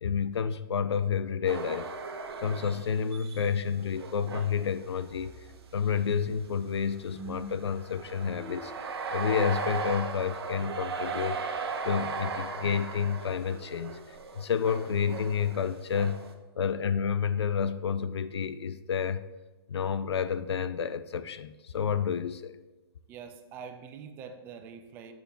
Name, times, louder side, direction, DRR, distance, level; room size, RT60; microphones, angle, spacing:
voice 1, 0.0-1.9 2.4-5.3 5.7-8.7 9.1-11.6 11.8-14.0 14.4-16.2 16.6-19.3 19.7-22.5, left 7 dB, 85° left, 14 dB, 0.4 m, -30 dB
sound 1, 1.5-5.6 6.1-6.2 7.0-16.3, right 4 dB, 70° right, 0.8 m, -37 dB
sound 2, 5.1-14.2, right 1 dB, 5° left, 0.8 m, -51 dB
voice 2, 23.1-25.1, right 6 dB, 15° right, 7 dB, 0.3 m, -44 dB
6.9 x 6.6 x 2.2 m, 1.1 s
hypercardioid pair, 145°, 14 cm